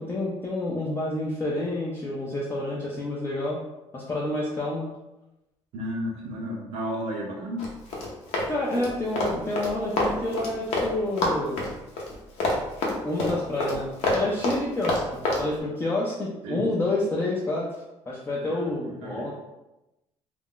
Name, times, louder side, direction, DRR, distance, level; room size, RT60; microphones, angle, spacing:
voice 1, 0.0-3.6 3.9-4.9 8.5-11.7 13.0-17.7 18.1-19.3, left 1 dB, 20° left, -4 dB, 0.4 m, -29 dB
voice 2, 5.7-7.7 16.4-16.8 18.4-19.3, equal, 70° right, -1 dB, 0.6 m, -33 dB
Run, 7.6-10.9 11.2-15.4, left 2 dB, 75° left, 0.7 m, -27 dB
2.4 x 2.1 x 3.6 m, 0.96 s
cardioid pair, 140°, 11 cm